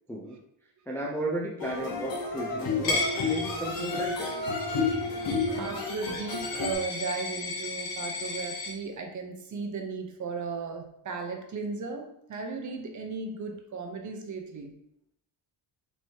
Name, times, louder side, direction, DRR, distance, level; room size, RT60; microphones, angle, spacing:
voice 1, 0.9-4.3, right 1 dB, 5° left, -2 dB, 0.4 m, -34 dB
sound 1, 1.6-6.7, left 4 dB, 50° left, 1.0 m, -31 dB
Coin (dropping), 2.8-8.7, left 3 dB, 85° left, 1.5 m, -35 dB
voice 2, 5.6-14.7, right 4 dB, 40° right, 3 dB, 0.8 m, -36 dB
4.6 x 3.1 x 2.8 m, 0.75 s
cardioid pair, 105°, 46 cm